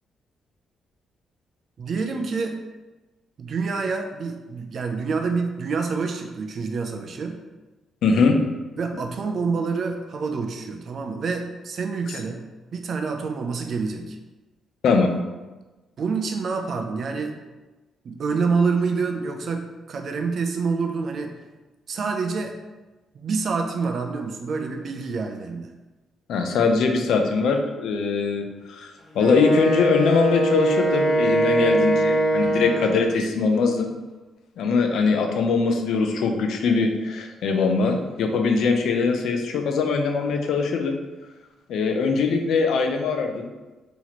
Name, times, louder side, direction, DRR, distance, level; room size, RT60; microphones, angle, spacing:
voice 1, 1.8-2.6 3.4-7.4 8.8-12.4 12.7-14.2 16.0-17.4 18.0-21.3 21.9-22.6 23.1-25.7, right 4 dB, 45° right, 4 dB, 0.4 m, -27 dB
voice 2, 8.0-8.3 14.8-15.1 26.3-33.9 34.6-41.0 41.7-43.5, left 4 dB, 70° left, 4 dB, 0.5 m, -22 dB
Wind instrument woodwind instrument, 29.1-33.2, right 1 dB, 45° left, 1.2 m, -22 dB
3.0 x 2.9 x 4.0 m, 1.2 s
cardioid pair, 170°, 0 cm